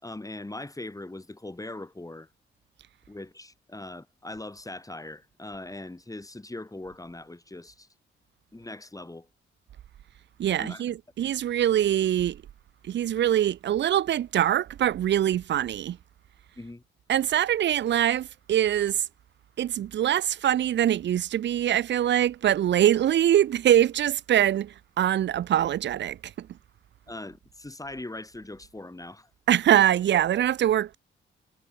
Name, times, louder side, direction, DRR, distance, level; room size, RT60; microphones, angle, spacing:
voice 1, 0.0-2.3 3.1-7.9 8.5-9.3 10.6-10.9 16.6-16.8 27.1-29.3, left 2 dB, 15° left, 5.8 m, -40 dB
voice 2, 10.4-12.4 12.8-16.0 17.1-19.0 19.6-26.5 29.5-31.0, right 11 dB, 60° right, 0.5 m, -23 dB
cardioid pair, 65°, 21 cm